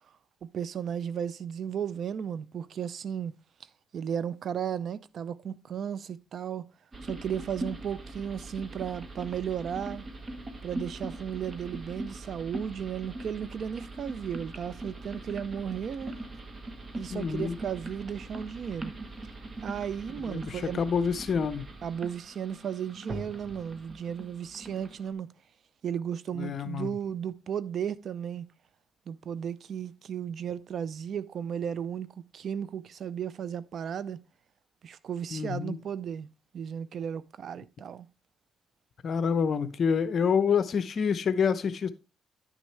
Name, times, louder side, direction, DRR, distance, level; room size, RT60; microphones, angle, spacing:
voice 1, 0.5-3.3 3.9-6.7 7.0-10.1 10.6-16.1 16.9-18.9 19.6-20.8 21.8-25.3 25.8-28.5 29.1-34.2 34.8-36.3 36.5-38.1, right 8 dB, 60° right, 0.5 m, -35 dB
sound 1, 6.9-25.1, right 2 dB, 35° right, 1.3 m, -41 dB
voice 2, 17.1-17.6 20.3-21.7 26.4-26.9 35.3-35.8 39.0-41.9, left 6 dB, 55° left, 0.7 m, -27 dB
10.5 x 6.3 x 3.2 m
cardioid pair, 90°, 0 cm